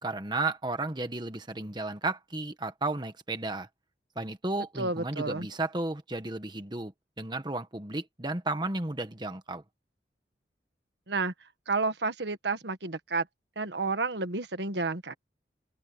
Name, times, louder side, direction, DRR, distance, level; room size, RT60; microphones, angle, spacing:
voice 1, 0.0-3.7 4.2-6.9 7.2-9.6, right 2 dB, 25° right, 1.2 m, -33 dB
voice 2, 4.8-5.5 11.1-11.3 11.7-13.3 13.5-15.1, right 3 dB, 75° right, 1.5 m, -30 dB
open air
head